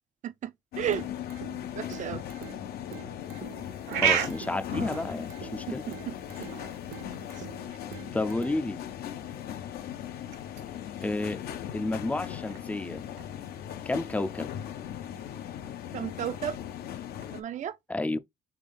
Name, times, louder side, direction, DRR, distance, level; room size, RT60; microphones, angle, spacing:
sound 1, 0.7-17.4, left 10 dB, 65° left, 0.7 m, -39 dB
sound 2, 0.9-8.9, right 9 dB, 65° right, 0.8 m, -48 dB
voice 1, 1.8-2.2 5.7-5.8 6.1-6.2 6.4-6.5 15.9-16.6 17.3-17.8, right 10 dB, 45° right, 0.5 m, -32 dB
sound 3, 3.2-17.3, right 8 dB, 85° right, 1.2 m, -38 dB
voice 2, 4.0-5.8 8.1-8.8 11.0-11.4 11.7-13.1 13.9-14.5 17.9-18.2, left 2 dB, 10° left, 0.4 m, -31 dB
3.5 x 3.3 x 3.8 m
cardioid pair, 110°, 17 cm